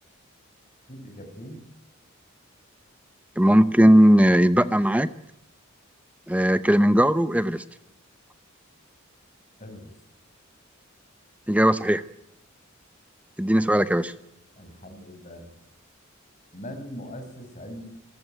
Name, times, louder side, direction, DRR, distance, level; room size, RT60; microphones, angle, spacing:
voice 1, 0.9-1.6 9.6-9.9 14.6-15.5 16.5-17.8, equal, 35° left, 6 dB, 6.0 m, -40 dB
voice 2, 3.4-5.1 6.3-7.6 11.5-12.0 13.4-14.1, equal, 5° right, 13 dB, 0.8 m, -18 dB
26.5 x 14.5 x 9.2 m, 0.82 s
head